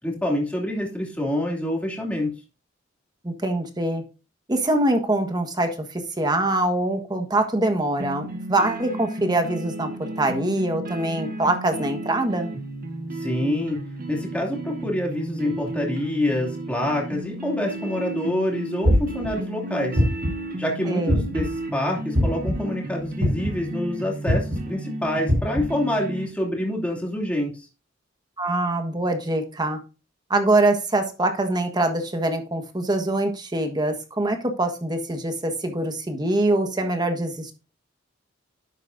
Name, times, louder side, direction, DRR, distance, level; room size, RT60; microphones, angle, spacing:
voice 1, 0.0-2.4 13.2-20.0 20.6-27.7, left 1 dB, 5° left, -1 dB, 2.7 m, -27 dB
voice 2, 3.2-4.0 4.5-12.5 20.9-21.3 28.4-29.8 30.3-37.5, right 2 dB, 20° right, 5 dB, 1.4 m, -24 dB
sound 1, 8.0-26.3, right 2 dB, 50° right, 1.5 m, -34 dB
sound 2, 18.8-19.3 20.0-20.4 21.1-21.5 22.1-22.5 23.2-23.6 24.3-24.6 25.3-25.6, equal, 70° right, 3.8 m, -21 dB
11.0 x 8.3 x 2.6 m, 0.32 s
head